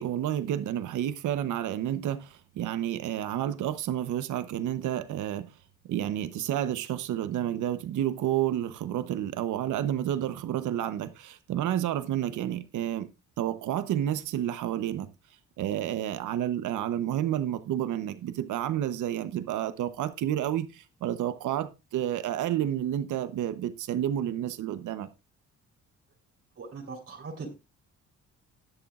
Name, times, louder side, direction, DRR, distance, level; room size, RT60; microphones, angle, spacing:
voice 1, 0.0-5.5 5.8-13.1 13.4-15.1 15.6-25.1, right 11 dB, 80° right, 1.0 m, -30 dB
voice 2, 26.6-27.5, right 4 dB, 50° right, 3.9 m, -40 dB
19.0 x 7.0 x 2.5 m
cardioid pair, 90°, 30 cm